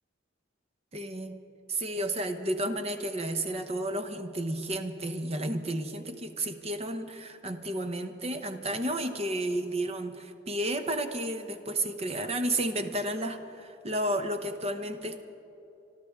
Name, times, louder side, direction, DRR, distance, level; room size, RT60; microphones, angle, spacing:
voice 1, 0.9-1.4 1.7-15.2, right 1 dB, 30° right, 7 dB, 0.9 m, -32 dB
25.0 x 13.0 x 3.6 m, 2.8 s
head